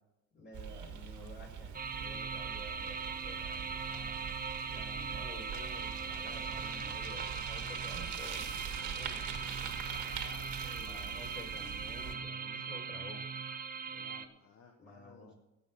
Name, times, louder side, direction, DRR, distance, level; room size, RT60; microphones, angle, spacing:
voice 1, 0.3-4.2 4.7-9.7 10.8-13.2 14.8-15.3, left 2 dB, 40° left, -1 dB, 4.8 m, -51 dB
Bicycle, 0.5-12.1, right 8 dB, 80° right, 1.7 m, -44 dB
sound 1, 1.7-14.3, right 5 dB, 30° right, 0.9 m, -40 dB
voice 2, 9.8-11.1 13.9-15.3, left 5 dB, 65° left, 3 dB, 1.3 m, -56 dB
17.0 x 5.9 x 5.9 m, 0.97 s
cardioid pair, 90°, 30 cm